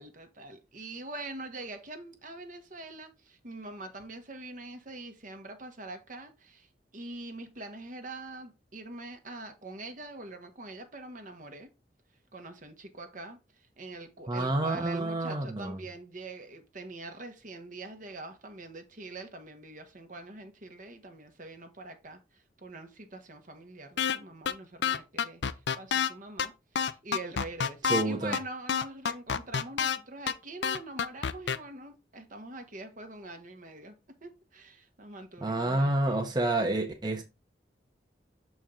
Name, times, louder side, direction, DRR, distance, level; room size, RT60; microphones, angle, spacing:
voice 1, 0.0-11.7 12.3-25.4 25.8-36.2, right 2 dB, 45° right, 1.1 m, -44 dB
voice 2, 14.3-15.8 27.9-28.4 35.4-37.2, right 2 dB, 25° right, 0.9 m, -28 dB
sound 1, 24.0-24.2 24.5-24.6 24.8-26.1 26.4-26.5 26.8-28.0 28.3-28.4 28.7-30.0 30.3-30.4 30.6-31.6, left 7 dB, 70° left, 0.5 m, -27 dB
6.8 x 4.6 x 3.7 m
head